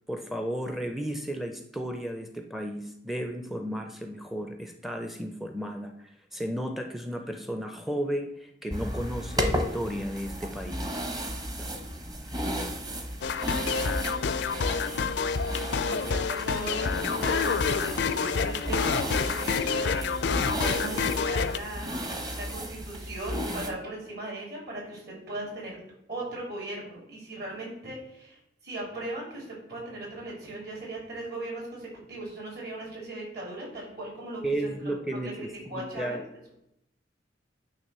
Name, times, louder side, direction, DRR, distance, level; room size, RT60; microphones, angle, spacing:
voice 1, 0.1-10.9 11.6-11.7 34.4-36.2, right 1 dB, ahead, 5 dB, 0.5 m, -34 dB
sound 1, 8.7-23.7, equal, 20° right, 0.9 m, -34 dB
sound 2, 13.2-21.6, left 5 dB, 65° left, 0.4 m, -28 dB
voice 2, 13.5-21.9 22.3-25.8 26.1-36.2, right 2 dB, 60° right, -2 dB, 3.6 m, -39 dB
9.5 x 3.4 x 6.7 m, 0.81 s
head